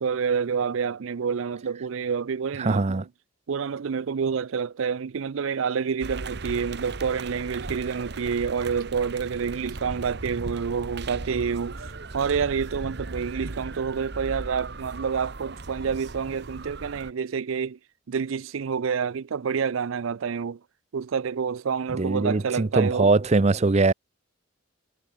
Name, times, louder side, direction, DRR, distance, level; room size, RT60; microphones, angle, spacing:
voice 1, 0.0-3.1 3.5-17.8 18.1-20.6 20.9-23.1, right 6 dB, 80° right, 0.5 m, -28 dB
voice 2, 2.6-3.1 22.0-23.9, right 3 dB, 35° right, 0.5 m, -21 dB
sound 1, 6.0-17.1, right 3 dB, 55° right, 1.3 m, -37 dB
head